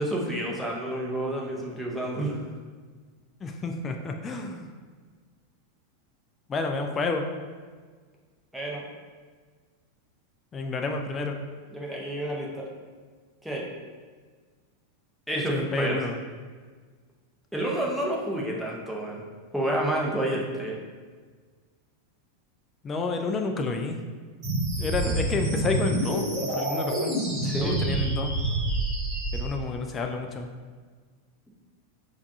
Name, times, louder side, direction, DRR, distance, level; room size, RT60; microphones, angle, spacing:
voice 1, 0.0-2.4 8.5-8.8 11.7-12.7 13.4-13.6 15.3-16.0 17.5-19.2 19.5-20.7 25.0-25.2 27.4-27.8, right 1 dB, ahead, -3 dB, 0.7 m, -29 dB
voice 2, 3.4-4.7 6.5-7.2 10.5-11.4 15.3-16.2 22.8-24.0 24.7-27.2 27.6-28.3 29.3-30.5, left 3 dB, 25° left, 4 dB, 0.3 m, -30 dB
sound 1, 24.4-29.4, right 1 dB, 30° right, 1.3 m, -27 dB
4.5 x 2.3 x 2.7 m, 1.5 s
figure-of-eight pair, 90°, 0 cm